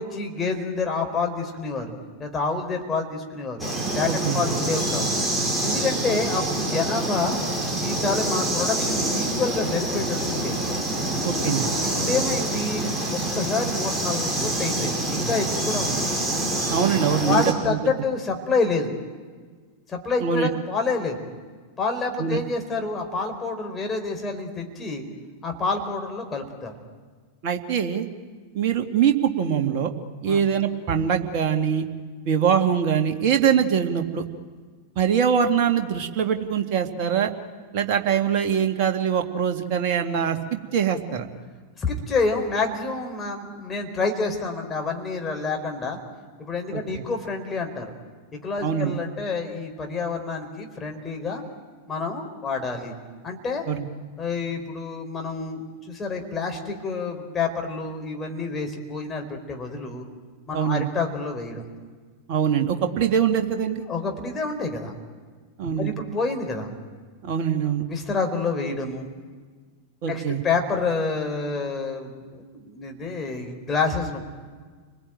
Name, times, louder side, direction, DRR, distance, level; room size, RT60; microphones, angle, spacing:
voice 1, 0.0-1.9 2.2-3.7 3.9-5.1 5.6-7.4 7.8-10.6 12.0-16.1 17.2-19.0 19.9-21.2 21.8-25.0 25.4-26.7 30.3-30.4 41.8-46.0 46.4-47.8 48.4-51.4 51.9-52.9 53.2-53.7 54.2-60.1 60.5-61.6 63.9-64.9 65.8-66.7 67.9-69.1 70.1-74.2, left 4 dB, 20° left, 3 dB, 4.4 m, -28 dB
sound 1, 3.6-17.5, right 1 dB, 5° right, 5.6 m, -26 dB
voice 2, 4.1-4.4 11.2-11.7 16.7-17.4 17.7-17.8 20.2-20.5 22.2-22.4 27.4-28.1 28.5-29.9 30.2-31.9 32.3-34.2 35.0-37.3 37.7-41.3 46.7-46.8 48.6-48.9 53.7-53.9 60.5-60.9 62.3-63.8 65.6-65.9 67.2-67.8 70.0-70.4, right 8 dB, 45° right, 4 dB, 2.3 m, -23 dB
30.0 x 21.0 x 9.2 m, 1.5 s
figure-of-eight pair, 90°, 0 cm